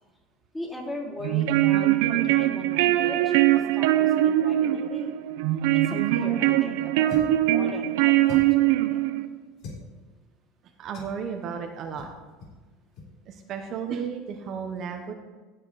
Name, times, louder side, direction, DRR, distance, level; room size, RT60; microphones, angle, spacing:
voice 1, 0.5-5.1 5.7-7.1 7.4-9.0, left 1 dB, 10° left, -4 dB, 3.3 m, -39 dB
sound 1, 1.2-9.3, right 14 dB, 80° right, 0.6 m, -22 dB
voice 2, 5.5-5.9 10.6-12.1 13.3-15.1, right 6 dB, 45° right, 4 dB, 1.0 m, -34 dB
Suction Cup, 7.1-7.4 8.2-8.7 9.6-9.9 10.9-11.2 12.0-12.1 12.4-12.6 12.9-13.1, left 3 dB, 60° left, 3.4 m, -40 dB
17.0 x 5.9 x 4.1 m, 1.3 s
supercardioid pair, 120°, 0 cm